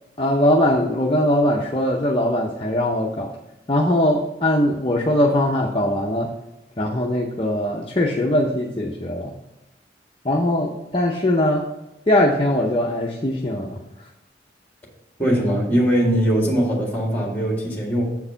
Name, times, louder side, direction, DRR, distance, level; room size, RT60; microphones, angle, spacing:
voice 1, 0.2-3.3 3.7-6.3 6.8-9.3 10.2-11.7 12.1-13.8, left 1 dB, 30° left, -1 dB, 0.7 m, -21 dB
voice 2, 15.2-18.1, right 1 dB, 10° left, -1 dB, 2.0 m, -20 dB
7.7 x 4.7 x 5.6 m, 0.96 s
head